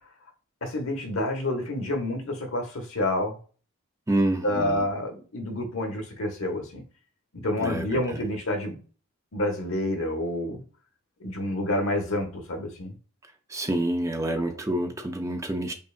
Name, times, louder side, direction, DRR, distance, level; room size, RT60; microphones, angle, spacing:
voice 1, 0.6-3.4 4.4-6.8 7.4-8.8 9.3-10.6 11.2-12.9, left 1 dB, 75° left, 1.0 m, -28 dB
voice 2, 4.1-4.9 7.6-8.3 13.2-15.7, right 1 dB, 15° right, 0.4 m, -28 dB
5.3 x 2.4 x 2.4 m
head